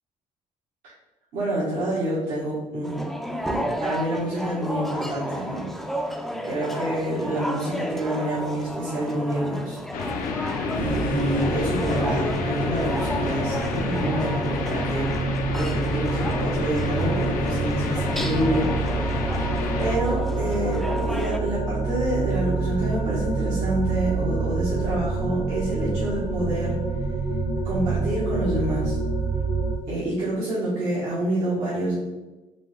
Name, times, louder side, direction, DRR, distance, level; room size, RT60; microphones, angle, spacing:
voice 1, 1.3-3.1 3.5-5.7 6.0-9.8 10.7-19.2 19.8-26.8 27.6-29.0 29.9-32.0, right 1 dB, 85° right, -10 dB, 1.4 m, -28 dB
sound 1, 2.8-21.4, equal, ahead, 0.3 m, -32 dB
sound 2, 9.9-20.0, left 5 dB, 80° left, 0.5 m, -30 dB
sound 3, 10.8-29.8, right 3 dB, 60° right, 1.1 m, -27 dB
4.8 x 2.4 x 3.3 m, 1.1 s
cardioid pair, 95°, 14 cm